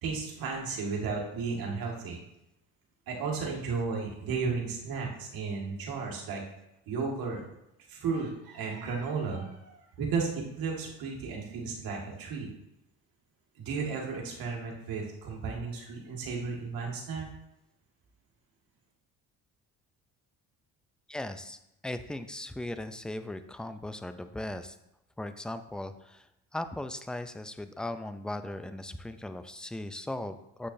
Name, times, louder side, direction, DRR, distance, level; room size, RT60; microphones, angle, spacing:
voice 1, 0.0-2.2 3.1-6.4 6.9-7.4 7.9-12.5 13.6-17.3, right 4 dB, 70° right, -1 dB, 1.9 m, -34 dB
voice 2, 21.1-24.8 25.2-26.3 26.5-30.7, left 1 dB, ahead, 10 dB, 0.4 m, -38 dB
7.8 x 6.6 x 2.7 m, 0.85 s
supercardioid pair, 85°, 37 cm